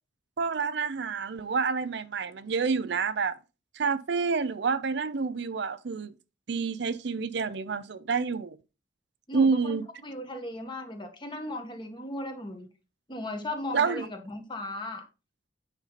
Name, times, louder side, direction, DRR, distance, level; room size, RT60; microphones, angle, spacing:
voice 1, 0.4-3.4 3.8-6.1 6.5-8.6 9.3-9.8 13.7-14.1, right 5 dB, 65° right, 0.6 m, -28 dB
voice 2, 9.3-9.8 10.0-12.7 13.1-15.1, left 1 dB, 25° left, 1.6 m, -37 dB
9.1 x 5.4 x 4.1 m
head